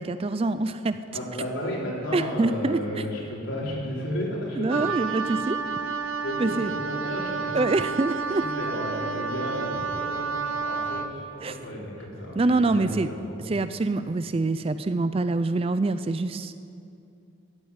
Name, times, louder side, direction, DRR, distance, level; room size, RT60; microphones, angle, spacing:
voice 1, 0.0-1.0 2.1-2.8 4.6-5.6 6.4-6.7 7.5-8.4 11.4-11.6 12.4-13.1 13.4-16.5, right 3 dB, 30° right, 12 dB, 0.4 m, -25 dB
voice 2, 1.1-5.0 6.2-8.0 8.3-13.4, equal, 70° left, -4 dB, 3.8 m, -33 dB
Wind instrument woodwind instrument, 4.7-11.1, right 5 dB, 90° right, 0.8 m, -30 dB
13.5 x 8.3 x 9.6 m, 2.6 s
head